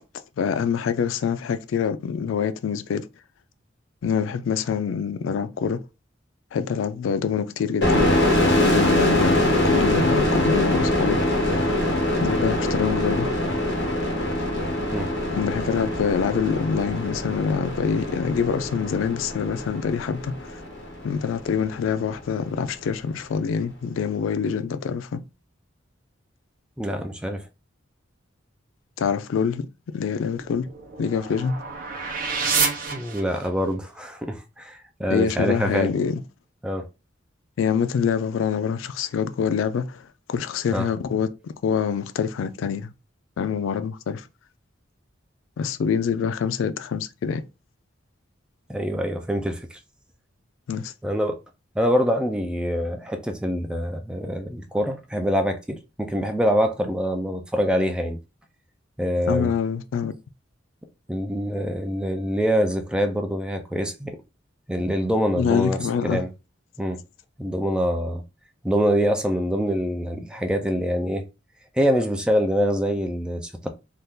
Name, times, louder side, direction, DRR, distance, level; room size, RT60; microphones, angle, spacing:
voice 1, 0.4-3.1 4.0-5.8 6.5-8.1 8.4-11.7 12.2-13.3 15.3-20.6 21.0-25.2 29.0-29.7 29.9-30.7 31.0-31.6 35.1-36.2 37.6-42.9 43.4-44.3 45.6-47.4 50.7-50.9 59.1-60.1 65.4-66.2, left 6 dB, 80° left, 0.3 m, -25 dB
sound 1, 7.8-21.2, left 1 dB, 60° left, 1.2 m, -23 dB
voice 2, 26.8-27.4 32.9-35.9 36.6-36.9 40.7-40.9 48.7-49.8 51.0-51.4 51.8-58.2 59.0-59.5 61.1-64.2 64.7-66.3 66.8-67.0 67.4-68.2 68.6-71.2 71.7-73.7, equal, 5° right, 0.3 m, -25 dB
sound 2, 30.3-33.7, right 5 dB, 45° right, 0.6 m, -28 dB
2.7 x 2.3 x 3.5 m
head